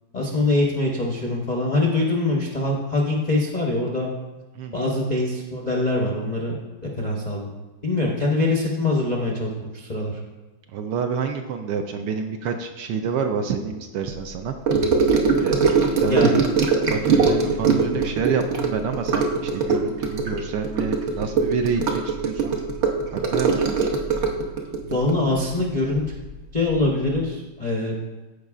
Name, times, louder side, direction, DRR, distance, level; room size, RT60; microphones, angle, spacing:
voice 1, 0.1-4.1 4.7-7.5 7.8-10.2 16.1-16.3 24.9-26.0 26.5-28.0, left 2 dB, 50° left, -3 dB, 0.5 m, -23 dB
voice 2, 4.5-4.9 10.7-14.5 15.4-16.4 16.9-22.6 23.1-23.7, right 6 dB, 75° right, 5 dB, 1.1 m, -28 dB
Gurgling / Sink (filling or washing) / Trickle dribble, 14.7-26.3 26.6-26.9 27.2-27.3, right 4 dB, 55° right, 0.7 m, -21 dB
14.5 x 5.0 x 2.4 m, 1.2 s
omnidirectional pair, 2.2 m